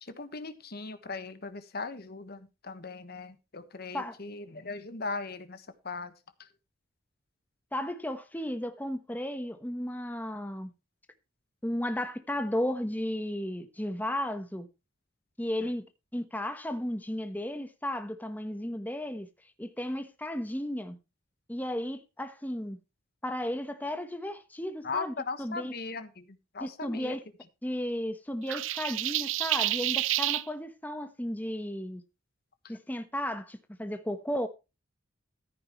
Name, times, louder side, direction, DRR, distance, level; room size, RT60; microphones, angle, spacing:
voice 1, 0.0-6.1 6.4-6.5 24.8-27.2 32.6-32.7, left 4 dB, 50° left, 1.3 m, -39 dB
voice 2, 7.7-10.7 11.6-14.7 15.4-15.8 16.1-19.3 19.6-21.0 21.5-22.8 23.2-25.7 26.6-27.2 27.6-32.0 32.7-34.5, left 1 dB, 10° left, 1.1 m, -34 dB
sound 1, 28.5-30.4, right 14 dB, 80° right, 0.6 m, -29 dB
14.5 x 9.3 x 3.1 m
head